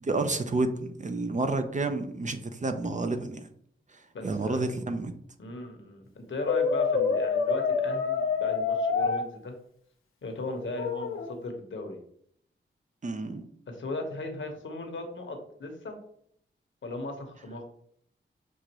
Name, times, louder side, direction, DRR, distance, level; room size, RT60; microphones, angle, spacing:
voice 1, 0.0-3.4 4.2-5.1 13.0-13.5, right 2 dB, 35° right, 7 dB, 0.5 m, -30 dB
voice 2, 4.1-4.7 5.4-9.6 10.2-12.0 13.7-16.0 16.8-17.6, left 2 dB, 70° left, 3 dB, 1.1 m, -37 dB
Brass instrument, 6.5-9.2 10.8-11.3, left 5 dB, 90° left, 0.7 m, -27 dB
6.4 x 2.4 x 2.9 m, 0.66 s
cardioid pair, 60°, 21 cm